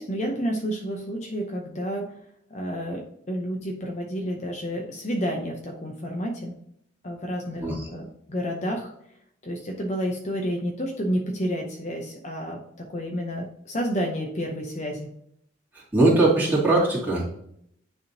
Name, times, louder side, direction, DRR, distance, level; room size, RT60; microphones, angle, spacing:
voice 1, 0.0-2.1 2.5-6.5 7.0-8.9 9.4-15.1, equal, 35° left, 1 dB, 0.7 m, -30 dB
voice 2, 15.7-17.3, right 2 dB, 10° right, -7 dB, 2.2 m, -21 dB
9.6 x 3.6 x 2.7 m, 0.72 s
head